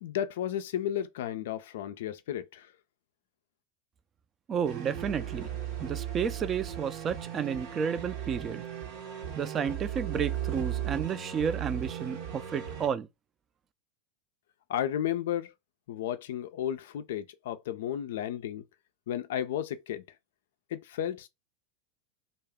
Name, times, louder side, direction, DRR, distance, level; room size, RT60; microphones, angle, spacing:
voice 1, 0.0-2.7 14.7-15.5 15.9-18.6 19.1-20.0 20.7-21.3, left 10 dB, 75° left, 0.3 m, -33 dB
voice 2, 4.5-5.5 5.8-8.7 9.4-13.1, right 7 dB, 35° right, 0.4 m, -32 dB
sound 1, 4.6-12.9, right 10 dB, 65° right, 0.8 m, -36 dB
2.3 x 2.0 x 3.5 m
hypercardioid pair, 95°, 0 cm